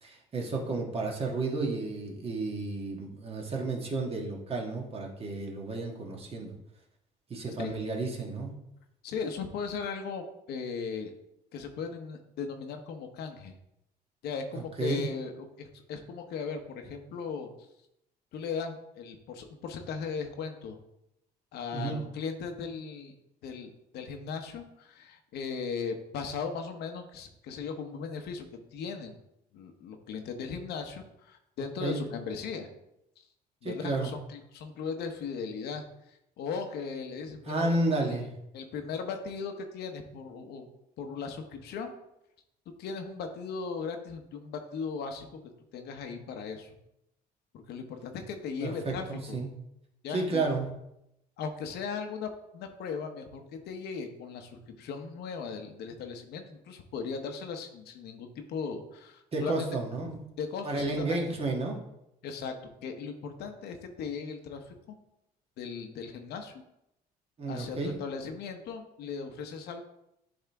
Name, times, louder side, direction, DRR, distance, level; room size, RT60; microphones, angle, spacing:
voice 1, 0.0-6.5 7.3-8.5 14.5-15.0 21.7-22.0 31.8-32.0 33.6-34.1 37.5-38.3 48.6-49.5 50.1-50.7 59.3-60.2 60.6-61.8 67.4-67.9, right 2 dB, 35° right, 0 dB, 1.6 m, -32 dB
voice 2, 9.0-11.1 11.5-13.5 14.2-15.3 15.6-17.5 18.3-20.8 21.5-23.1 23.4-29.2 29.5-32.7 33.6-37.8 38.1-38.2 38.5-40.7 41.0-41.9 42.8-45.4 45.7-46.7 47.5-49.4 50.0-50.4 51.4-59.7 60.4-61.2 62.2-62.5 62.8-65.0 65.6-66.5 67.5-69.8, left 5 dB, 75° left, 5 dB, 1.0 m, -38 dB
10.5 x 3.6 x 3.4 m, 0.84 s
cardioid pair, 110°, 17 cm